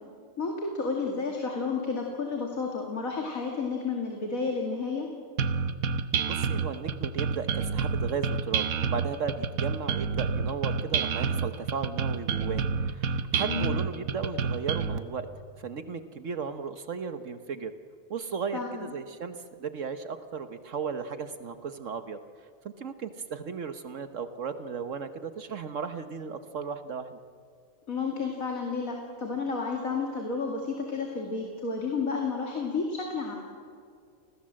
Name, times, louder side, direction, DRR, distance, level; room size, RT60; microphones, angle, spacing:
voice 1, 0.4-5.1 13.4-13.8 18.5-18.9 27.9-33.4, left 4 dB, 80° left, 1 dB, 2.9 m, -31 dB
sound 1, 5.4-15.0, right 6 dB, 85° right, 1.4 m, -29 dB
voice 2, 6.2-15.3 15.6-17.7 18.1-22.2 22.6-27.2, right 5 dB, 65° right, 9 dB, 1.4 m, -35 dB
30.0 x 20.0 x 7.6 m, 2.2 s
omnidirectional pair, 1.4 m